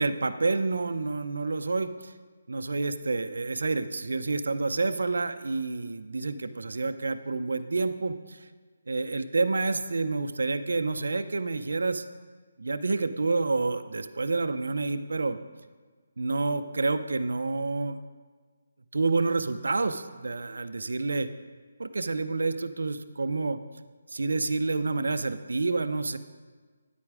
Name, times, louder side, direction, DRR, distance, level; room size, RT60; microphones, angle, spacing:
voice 1, 0.0-2.1 2.5-8.4 8.9-12.0 12.6-15.4 16.2-18.0 18.9-21.3 21.8-23.6 24.1-26.2, right 3 dB, 85° right, 11 dB, 0.7 m, -28 dB
9.9 x 8.4 x 4.8 m, 1.4 s
hypercardioid pair, 165°, 0 cm